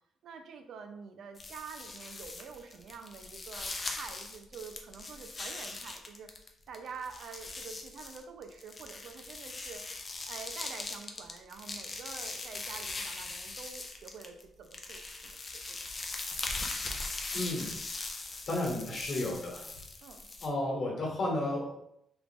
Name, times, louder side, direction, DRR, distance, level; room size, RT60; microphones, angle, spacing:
voice 1, 0.2-6.3 6.7-9.8 10.3-15.8 20.0-20.3, right 5 dB, 65° right, 6 dB, 0.4 m, -47 dB
sound 1, 1.4-6.5 6.7-14.4 14.7-20.5, left 3 dB, 25° left, 0.5 m, -40 dB
voice 2, 17.3-17.8 18.2-19.7 20.4-21.7, left 1 dB, 45° left, -3 dB, 1.3 m, -33 dB
3.3 x 2.4 x 3.6 m, 0.77 s
cardioid pair, 135°, 0 cm